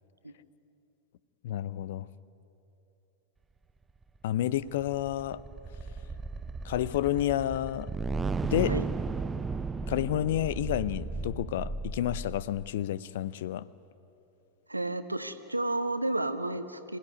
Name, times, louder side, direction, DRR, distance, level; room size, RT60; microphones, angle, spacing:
voice 1, 1.4-2.1 4.2-5.4 6.6-7.9 8.4-8.7 9.9-13.7, left 12 dB, 55° left, 20 dB, 0.6 m, -30 dB
sound 1, 4.3-12.7, right 4 dB, 15° right, 0.5 m, -35 dB
voice 2, 14.7-17.0, right 2 dB, 85° right, 11 dB, 1.0 m, -31 dB
26.0 x 17.0 x 9.6 m, 2.9 s
figure-of-eight pair, 90°, 0 cm